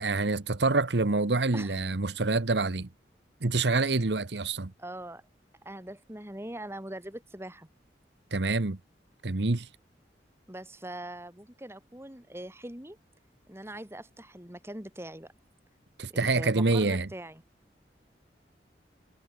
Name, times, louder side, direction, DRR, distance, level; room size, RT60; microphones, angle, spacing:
voice 1, 0.0-2.9 3.4-4.7 8.3-8.8 9.2-9.7 16.0-17.1, right 3 dB, 75° right, 1.1 m, -26 dB
voice 2, 4.8-5.2 5.6-7.7 10.5-13.0 13.5-15.3 16.1-17.4, right 1 dB, 15° right, 2.8 m, -42 dB
head